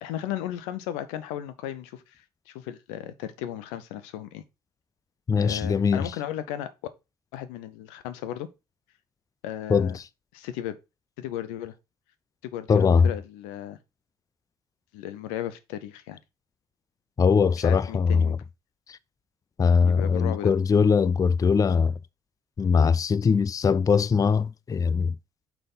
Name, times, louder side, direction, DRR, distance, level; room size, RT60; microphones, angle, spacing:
voice 1, 0.0-4.4 5.4-6.7 7.3-8.5 9.4-10.0 10.3-10.8 11.2-11.7 12.4-13.8 14.9-16.2 17.6-18.4 19.8-20.5, left 11 dB, 90° left, 0.7 m, -35 dB
voice 2, 5.3-6.1 9.7-10.0 12.7-13.1 17.2-18.4 18.9-19.0 19.6-21.9 22.6-25.2, left 5 dB, 30° left, 0.4 m, -21 dB
5.8 x 5.4 x 4.1 m
supercardioid pair, 55°, 12 cm